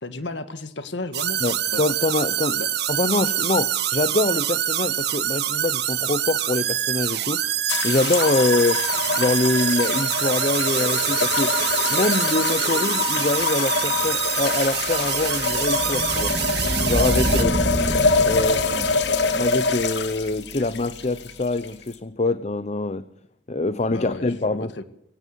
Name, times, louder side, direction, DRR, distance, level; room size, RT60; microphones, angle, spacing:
voice 1, 0.0-1.4 1.7-1.8 2.6-2.7 17.2-17.5 23.9-24.8, left 2 dB, 90° left, 11 dB, 1.8 m, -33 dB
sound 1, 1.1-17.4, right 11 dB, 65° right, 1.5 m, -25 dB
voice 2, 1.4-2.6 2.9-7.4 7.8-8.8 9.2-11.6 11.9-16.3 16.9-17.5 18.2-18.9 19.3-23.0 23.5-24.7, left 2 dB, 40° left, 14 dB, 0.8 m, -24 dB
sound 2, 7.7-21.9, left 4 dB, 75° left, 2.6 m, -25 dB
sound 3, 14.5-21.3, equal, 40° right, 3.2 m, -29 dB
23.0 x 17.0 x 8.3 m, 0.75 s
head